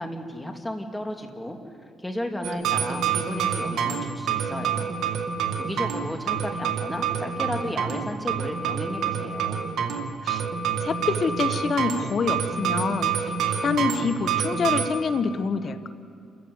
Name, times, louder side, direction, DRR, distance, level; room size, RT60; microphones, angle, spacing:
voice 1, 0.0-1.6 2.0-5.0 5.6-9.6, left 1 dB, 10° left, 4 dB, 2.6 m, -34 dB
sound 1, 2.4-14.9, right 7 dB, 70° right, 2.4 m, -27 dB
voice 2, 10.8-13.1 13.6-15.9, left 5 dB, 50° left, 10 dB, 1.3 m, -26 dB
28.5 x 15.0 x 8.0 m, 2.3 s
cardioid pair, 90°, 0 cm